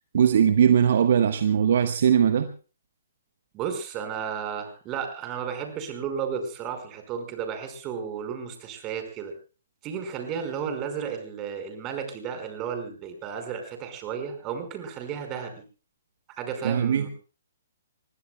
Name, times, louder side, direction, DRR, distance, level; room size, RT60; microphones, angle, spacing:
voice 1, 0.1-2.5 16.6-17.1, right 8 dB, 55° right, 8 dB, 1.2 m, -20 dB
voice 2, 3.5-9.3 9.8-15.5 16.4-17.1, right 7 dB, 25° right, 6 dB, 4.8 m, -33 dB
25.5 x 21.5 x 2.3 m, 0.36 s
figure-of-eight pair, 130°, 0 cm